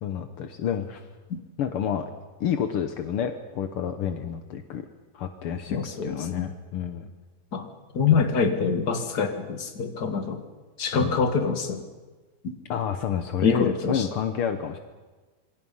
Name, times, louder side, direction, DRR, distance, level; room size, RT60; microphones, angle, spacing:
voice 1, 0.0-1.1 1.6-2.0 2.4-4.9 5.1-7.1 8.1-8.2 11.0-11.2 12.7-14.8, left 8 dB, 70° left, 8 dB, 1.3 m, -29 dB
voice 2, 5.7-6.1 7.5-7.6 7.9-10.4 10.8-11.8 13.4-14.0, left 5 dB, 35° left, 6 dB, 1.8 m, -25 dB
27.0 x 24.0 x 5.6 m, 1.3 s
omnidirectional pair, 4.0 m